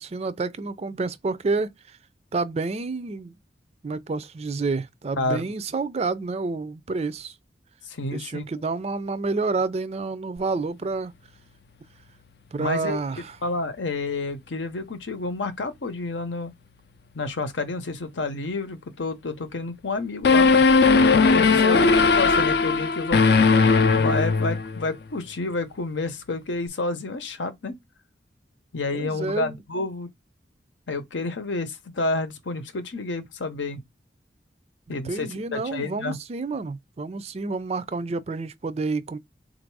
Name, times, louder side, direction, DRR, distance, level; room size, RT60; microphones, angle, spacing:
voice 1, 0.0-2.0 2.3-3.3 3.8-7.3 8.1-11.1 12.5-13.4 21.5-22.1 28.9-29.6 34.9-39.2, right 3 dB, 35° right, 0.4 m, -29 dB
voice 2, 5.2-5.5 7.9-8.5 12.6-13.0 13.4-16.5 17.1-20.5 21.1-21.9 22.2-23.4 24.0-27.8 28.7-30.1 30.9-33.8 34.9-36.2, left 3 dB, 90° left, 0.8 m, -29 dB
sound 1, 20.2-24.9, left 4 dB, 60° left, 0.4 m, -18 dB
4.0 x 2.6 x 4.6 m
head